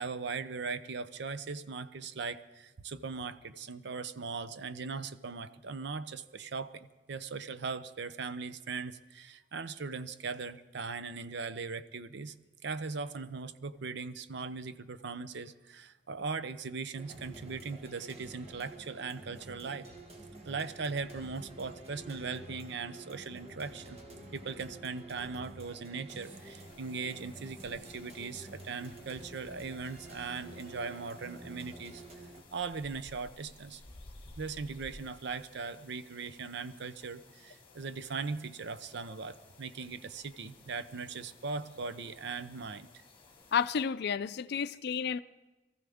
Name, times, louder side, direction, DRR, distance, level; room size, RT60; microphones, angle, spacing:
voice 1, 0.0-12.3 12.6-19.9 20.4-24.0 24.3-32.0 32.5-33.8 34.4-42.9, right 4 dB, 65° right, 0.7 m, -39 dB
sound 1, 17.0-32.4, right 1 dB, 35° right, 1.6 m, -49 dB
sound 2, 26.2-43.9, left 2 dB, 30° left, 1.6 m, -57 dB
voice 2, 43.5-45.2, left 7 dB, 60° left, 0.4 m, -31 dB
23.0 x 14.5 x 3.5 m
head